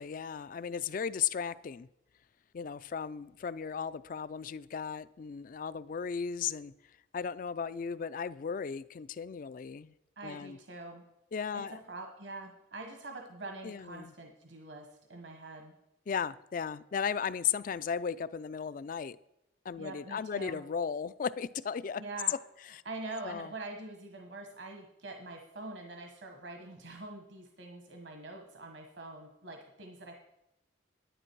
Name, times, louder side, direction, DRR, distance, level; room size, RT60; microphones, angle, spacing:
voice 1, 0.0-1.9 2.5-6.7 7.1-9.9 10.2-10.6 11.3-11.8 13.6-14.1 16.1-19.2 19.6-22.0 22.7-22.8 23.2-23.5, left 7 dB, 45° left, 0.3 m, -36 dB
voice 2, 10.2-11.0 11.5-15.7 19.8-20.6 22.0-22.3 22.8-30.1, right 2 dB, 70° right, 1.3 m, -44 dB
10.0 x 10.0 x 4.6 m
head